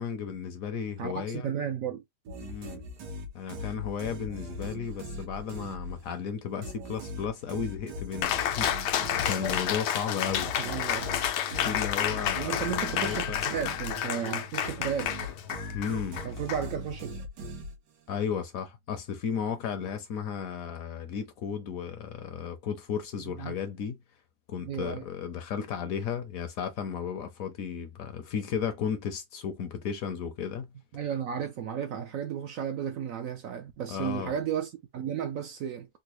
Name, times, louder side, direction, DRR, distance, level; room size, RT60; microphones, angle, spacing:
voice 1, 0.0-1.5 2.4-2.8 3.3-10.7 11.5-13.4 15.7-16.2 18.1-24.0 24.5-30.7 33.9-34.3, left 7 dB, 65° left, 0.9 m, -34 dB
voice 2, 1.0-2.0 10.6-11.1 12.3-15.3 16.2-17.2 23.2-23.6 24.6-25.1 30.9-35.9, right 8 dB, 70° right, 0.8 m, -34 dB
sound 1, 2.2-6.2 6.6-14.2 14.6-18.1, left 1 dB, 90° right, 1.5 m, -40 dB
Cheering, 8.2-17.2, left 10 dB, 85° left, 1.2 m, -31 dB
3.8 x 2.2 x 2.9 m
omnidirectional pair, 1.8 m